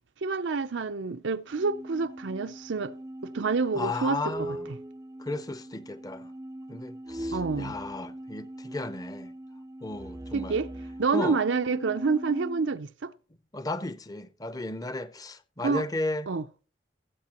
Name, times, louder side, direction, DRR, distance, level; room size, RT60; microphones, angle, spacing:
voice 1, 0.2-2.9 3.3-4.2 7.3-7.7 10.3-10.7 11.0-13.1 15.6-15.8 16.3-16.4, right 4 dB, 80° right, 0.6 m, -28 dB
sound 1, 1.5-12.7, right 1 dB, 20° right, 0.5 m, -40 dB
voice 2, 3.7-4.7 5.2-6.3 6.7-9.3 9.8-10.6 11.1-11.4 13.5-16.3, left 2 dB, 20° left, 0.7 m, -34 dB
18.5 x 8.3 x 2.9 m
head